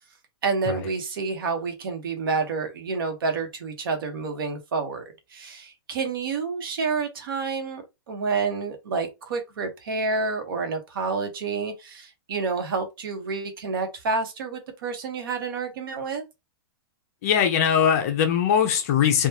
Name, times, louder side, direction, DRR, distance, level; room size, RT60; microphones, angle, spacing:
voice 1, 0.4-5.0 5.3-16.2, right 4 dB, 60° right, 1.2 m, -29 dB
voice 2, 17.2-19.3, left 8 dB, 40° left, 0.8 m, -21 dB
3.6 x 2.5 x 3.0 m
hypercardioid pair, 170°, 13 cm